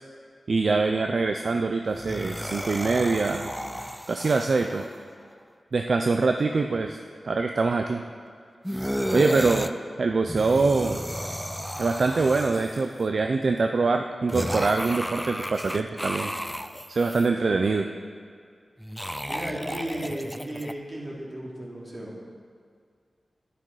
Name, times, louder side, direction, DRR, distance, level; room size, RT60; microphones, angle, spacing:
voice 1, 0.5-3.5 4.1-4.9 5.7-7.0 7.2-8.0 9.1-11.0 11.8-16.3 16.9-17.9, right 3 dB, 65° right, 5 dB, 0.5 m, -24 dB
sound 1, 1.9-4.9 8.6-9.7 10.2-13.0 14.3-17.3 18.8-20.7, equal, ahead, 0.4 m, -33 dB
voice 2, 19.3-22.1, right 1 dB, 40° right, -4 dB, 3.1 m, -35 dB
11.0 x 10.5 x 4.9 m, 2.1 s
wide cardioid pair, 85°, 0 cm